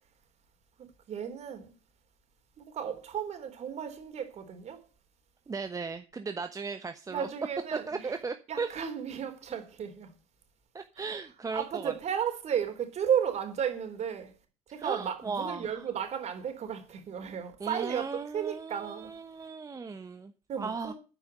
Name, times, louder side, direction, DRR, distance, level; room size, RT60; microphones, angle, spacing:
voice 1, 0.8-1.7 2.6-4.8 7.1-8.1 8.5-10.1 11.5-14.3 14.7-18.0 18.3-19.1 20.5-20.9, right 8 dB, 40° right, 3.7 m, -34 dB
voice 2, 5.5-7.3 7.9-8.7 10.7-11.9 14.8-15.7 17.6-20.3 20.6-20.9, right 4 dB, 20° right, 1.1 m, -36 dB
9.6 x 8.9 x 8.1 m
figure-of-eight pair, 65°, 17 cm